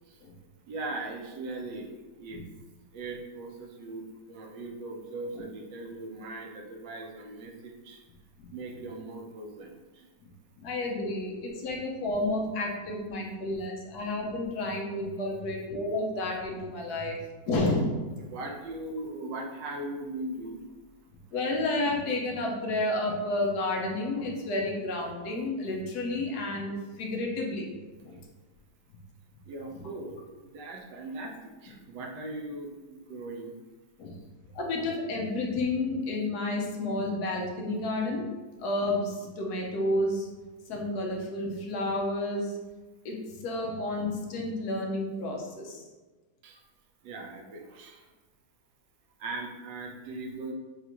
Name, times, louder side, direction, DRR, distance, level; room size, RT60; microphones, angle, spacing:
voice 1, 0.6-2.4 2.9-8.0 8.5-10.1 15.4-15.5 17.0-17.1 18.2-20.6 21.1-21.4 28.0-28.1 29.4-33.5 46.4-46.6 47.0-48.1 49.2-50.5, right 2 dB, 80° right, 1 dB, 1.3 m, -39 dB
voice 2, 10.6-17.2 17.5-18.1 21.3-27.7 28.0-28.2 34.0-34.2 34.5-38.3 38.6-40.3 40.7-42.6 43.0-45.8, left 2 dB, 70° left, 0 dB, 1.1 m, -31 dB
5.6 x 2.5 x 2.9 m, 1.2 s
omnidirectional pair, 1.9 m